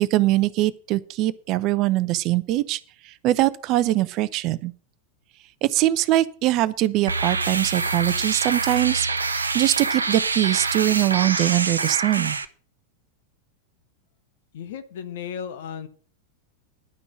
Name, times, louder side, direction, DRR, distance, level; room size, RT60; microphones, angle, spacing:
voice 1, 0.0-2.8 3.0-4.7 5.6-12.4, right 16 dB, 40° right, 17 dB, 0.6 m, -22 dB
sound 1, 7.1-12.5, right 4 dB, 75° right, 0.7 m, -26 dB
voice 2, 14.5-15.9, left 8 dB, 55° left, 10 dB, 1.2 m, -34 dB
11.0 x 6.2 x 7.6 m, 0.43 s
figure-of-eight pair, 90°, 0 cm